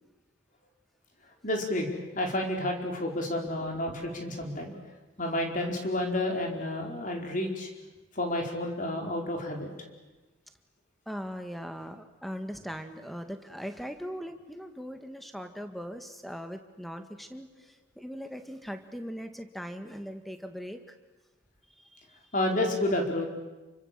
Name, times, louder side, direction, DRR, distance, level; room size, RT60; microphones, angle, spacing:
voice 1, 1.4-1.9 2.1-4.8 5.2-7.7 8.1-9.7 22.3-23.3, left 1 dB, 40° left, 2 dB, 4.6 m, -30 dB
voice 2, 11.1-21.0 21.8-22.2, equal, ahead, 7 dB, 1.8 m, -40 dB
29.0 x 25.0 x 7.6 m, 1.2 s
head